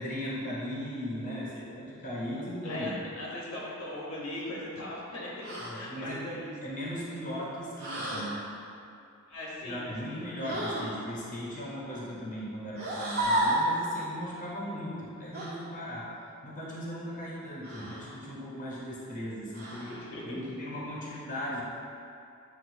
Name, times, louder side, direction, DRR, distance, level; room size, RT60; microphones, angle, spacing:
voice 1, 0.0-3.1 5.6-8.4 9.6-16.1 16.4-20.0 20.2-21.6, equal, 40° left, -7 dB, 0.8 m, -37 dB
voice 2, 2.6-6.5 9.3-10.3 19.8-20.4, left 1 dB, 75° left, -5 dB, 1.0 m, -39 dB
sound 1, 5.4-5.8 7.8-8.4 10.4-11.0 12.7-13.7 15.3-15.5 17.6-18.1 19.5-20.0, right 1 dB, 85° right, 1.4 m, -31 dB
7.8 x 2.6 x 2.6 m, 2.6 s
head